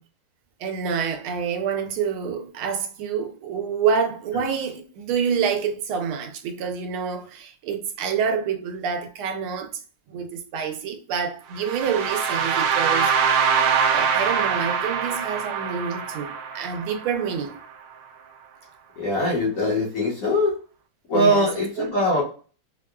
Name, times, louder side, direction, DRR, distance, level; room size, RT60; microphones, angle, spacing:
voice 1, 0.6-9.8 10.1-13.1 13.9-17.6 21.1-21.5 21.8-22.0, right 6 dB, 90° right, 1.5 m, -27 dB
sound 1, 11.6-17.5, right 6 dB, 70° right, 1.1 m, -23 dB
voice 2, 19.0-20.6 21.1-22.2, left 1 dB, 45° left, 1.3 m, -22 dB
4.7 x 2.2 x 2.2 m
omnidirectional pair, 2.3 m